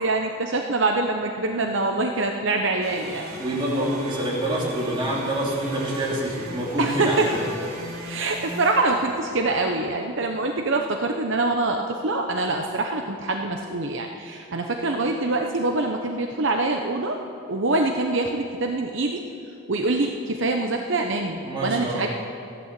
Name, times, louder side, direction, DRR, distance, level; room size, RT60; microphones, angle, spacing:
voice 1, 0.0-3.3 6.8-7.2 8.0-17.2 17.5-19.2 19.7-22.1, right 2 dB, 60° right, 3 dB, 0.8 m, -24 dB
sound 1, 2.8-9.8, right 1 dB, 75° right, 3.1 m, -38 dB
voice 2, 3.4-7.4 21.4-22.1, right 1 dB, 25° right, -5 dB, 3.1 m, -26 dB
14.5 x 11.0 x 7.5 m, 2.5 s
head